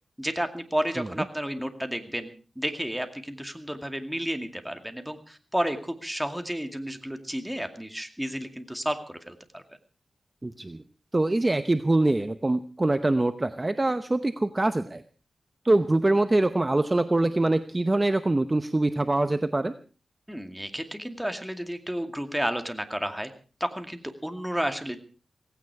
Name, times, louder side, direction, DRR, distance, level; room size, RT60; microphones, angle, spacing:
voice 1, 0.2-2.3 2.6-9.6 20.3-23.3 23.6-25.0, equal, 5° right, 7 dB, 2.3 m, -31 dB
voice 2, 10.4-10.8 11.1-15.0 15.6-19.7, right 2 dB, 25° right, 10 dB, 0.9 m, -24 dB
17.5 x 16.5 x 4.8 m, 0.37 s
wide cardioid pair, 90°, 0 cm